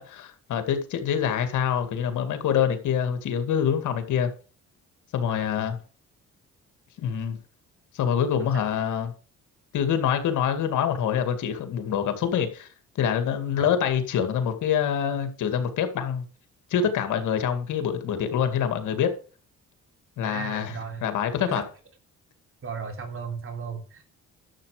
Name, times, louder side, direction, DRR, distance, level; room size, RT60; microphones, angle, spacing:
voice 1, 0.0-4.3 5.1-5.8 7.0-7.4 7.9-9.1 9.7-12.7 13.0-16.2 16.7-19.1 20.2-21.6, left 8 dB, 80° left, 2.2 m, -25 dB
voice 2, 5.3-5.6 8.4-8.6 13.6-13.7 20.2-21.1 21.4-21.6 22.6-24.0, right 5 dB, 45° right, 3.4 m, -36 dB
11.5 x 7.5 x 5.0 m
cardioid pair, 90°, 30 cm